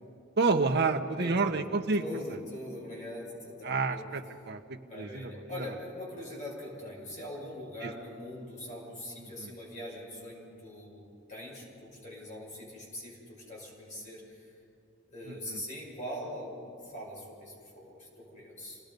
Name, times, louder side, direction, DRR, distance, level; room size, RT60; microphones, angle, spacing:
voice 1, 0.4-2.0 3.6-5.7 7.8-7.9 9.4-9.5 15.3-15.6, right 4 dB, 55° right, 5 dB, 1.1 m, -29 dB
voice 2, 1.2-1.6 2.0-4.1 4.8-14.5 15.1-18.8, left 1 dB, 40° left, -4 dB, 6.0 m, -42 dB
28.0 x 18.5 x 5.3 m, 2.4 s
head